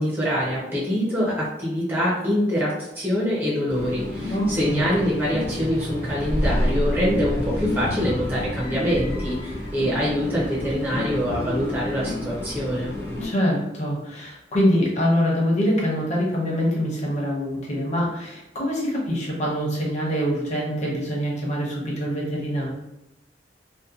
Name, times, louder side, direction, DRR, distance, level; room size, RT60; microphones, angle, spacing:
voice 1, 0.0-12.9, equal, 15° right, -8 dB, 0.5 m, -25 dB
sound 1, 3.7-13.3, left 1 dB, 75° left, 1.0 m, -28 dB
voice 2, 4.3-4.9 13.2-22.7, equal, 45° left, -4 dB, 0.8 m, -24 dB
2.7 x 2.1 x 2.3 m, 0.92 s
head